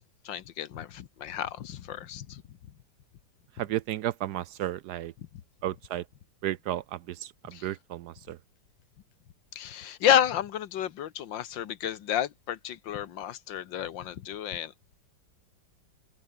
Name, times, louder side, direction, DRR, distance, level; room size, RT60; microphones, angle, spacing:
voice 1, 0.3-2.6 5.2-5.3 7.5-7.7 9.5-14.7, left 10 dB, 80° left, 1.8 m, -30 dB
voice 2, 3.6-5.1 5.6-6.0 6.4-8.4, right 13 dB, 70° right, 1.0 m, -33 dB
omnidirectional pair, 2.0 m